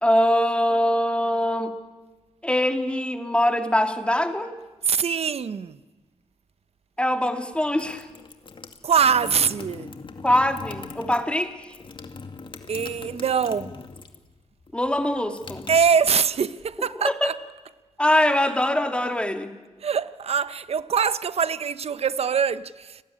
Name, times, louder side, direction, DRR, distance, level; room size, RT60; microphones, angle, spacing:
voice 1, 0.0-1.7 2.4-4.5 7.0-8.1 10.2-11.5 14.7-15.7 17.0-17.3 18.0-19.5, left 1 dB, 10° left, 2.5 m, -23 dB
voice 2, 4.8-5.8 8.8-9.9 12.7-13.7 15.7-17.4 19.8-23.0, right 6 dB, 65° right, 0.9 m, -23 dB
sound 1, 7.5-14.3 14.6-16.5, left 4 dB, 50° left, 2.2 m, -41 dB
29.5 x 20.0 x 10.0 m
wide cardioid pair, 95°, 11 cm